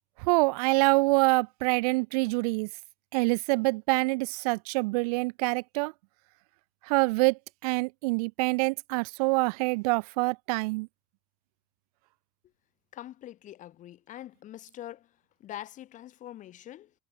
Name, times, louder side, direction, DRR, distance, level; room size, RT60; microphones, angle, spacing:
voice 1, 0.2-2.7 3.1-5.9 6.9-10.9, right 27 dB, 90° right, 0.9 m, -26 dB
voice 2, 12.9-16.9, left 13 dB, 40° left, 3.1 m, -44 dB
cardioid pair, 145°, 19 cm